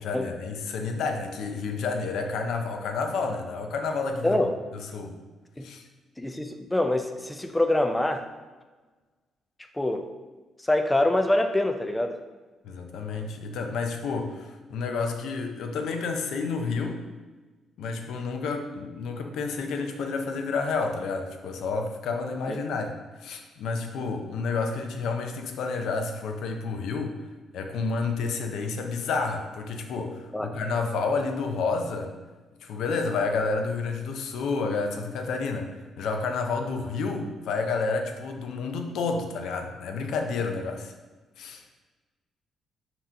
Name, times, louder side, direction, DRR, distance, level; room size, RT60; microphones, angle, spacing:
voice 1, 0.0-4.3 4.7-5.2 5.6-5.8 12.6-17.0 17.8-27.1 27.5-32.1 32.6-35.7 36.0-40.9 41.4-41.6, left 4 dB, 80° left, 4 dB, 0.5 m, -30 dB
voice 2, 4.2-4.5 5.6-5.7 6.2-8.3 9.7-10.1 10.6-12.2 30.3-30.5, left 1 dB, 10° left, 6 dB, 0.3 m, -25 dB
3.7 x 2.9 x 4.4 m, 1.3 s
cardioid pair, 90°, 0 cm